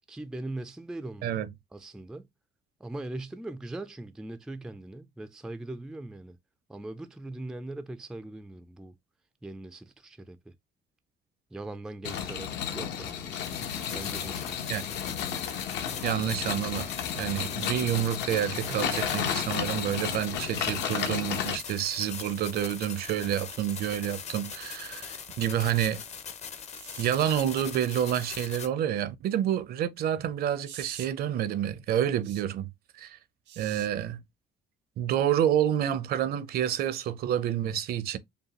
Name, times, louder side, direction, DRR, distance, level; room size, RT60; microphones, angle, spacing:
voice 1, 0.0-1.3 1.7-2.2 2.8-6.4 6.7-8.9 9.4-10.4 11.5-13.3 13.9-14.6, right 2 dB, 5° right, 0.3 m, -40 dB
sound 1, 12.0-21.6, left 8 dB, 80° left, 0.9 m, -33 dB
sound 2, 13.4-28.7, left 7 dB, 40° left, 0.6 m, -41 dB
voice 2, 16.0-26.0 27.0-32.7 33.0-33.2 33.6-34.2 35.0-38.2, right 10 dB, 60° right, 0.5 m, -28 dB
sound 3, 19.8-20.2 21.9-22.4 23.7-23.9 26.7-27.1 30.6-31.1 32.2-32.4 33.5-33.9 35.4-35.5, right 9 dB, 85° right, 1.1 m, -46 dB
5.2 x 2.3 x 2.9 m
cardioid pair, 145°, 18 cm